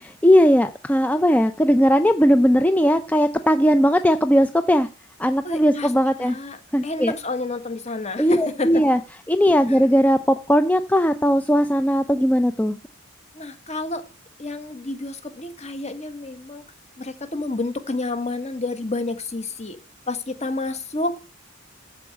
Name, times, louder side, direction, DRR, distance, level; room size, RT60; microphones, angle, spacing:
voice 1, 0.0-4.9 5.2-6.4 6.7-7.1 8.2-9.0 9.3-12.8, equal, 10° left, 9 dB, 0.5 m, -18 dB
voice 2, 5.4-5.9 6.2-6.6 6.8-8.8 9.7-9.9 13.3-14.0 14.4-16.6 17.0-19.8 20.1-21.2, left 2 dB, 35° left, 9 dB, 1.5 m, -29 dB
14.0 x 4.8 x 8.4 m, 0.33 s
head